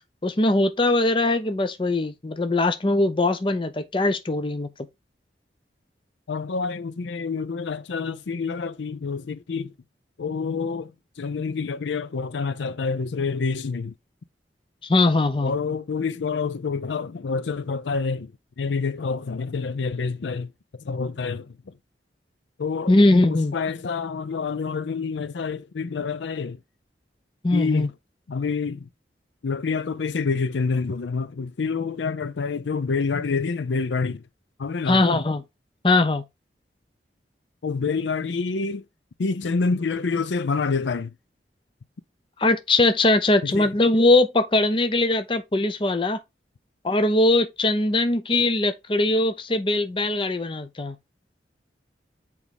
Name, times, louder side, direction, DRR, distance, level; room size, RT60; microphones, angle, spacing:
voice 1, 0.2-4.7 14.8-15.5 22.9-23.5 27.4-27.9 34.9-35.4 35.8-36.2 42.4-46.2 46.8-50.9, left 2 dB, 30° left, 0.6 m, -21 dB
voice 2, 6.3-9.7 10.2-13.9 15.4-21.8 22.6-23.0 23.3-26.6 27.5-27.9 28.3-28.9 29.4-34.2 34.6-35.2 37.6-38.8 39.2-41.1 43.4-43.7, left 4 dB, 85° left, 0.5 m, -27 dB
6.1 x 4.6 x 3.5 m
head